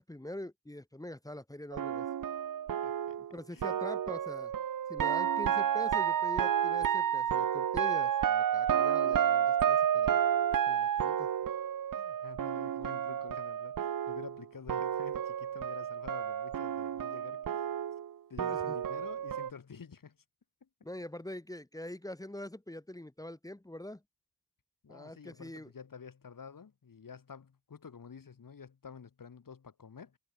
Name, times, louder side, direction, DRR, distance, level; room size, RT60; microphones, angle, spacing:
voice 1, 0.0-2.1 3.3-4.5 4.9-10.2 10.7-11.3 18.4-18.8 20.8-24.0 24.9-25.7, left 1 dB, 10° left, 2.1 m, -44 dB
sound 1, 1.7-14.4 14.7-19.5, right 9 dB, 70° right, 0.8 m, -31 dB
voice 2, 2.8-3.2 3.5-3.8 12.0-17.7 18.3-20.2 20.6-20.7 24.8-30.2, left 6 dB, 70° left, 7.4 m, -49 dB
wide cardioid pair, 115°, 34 cm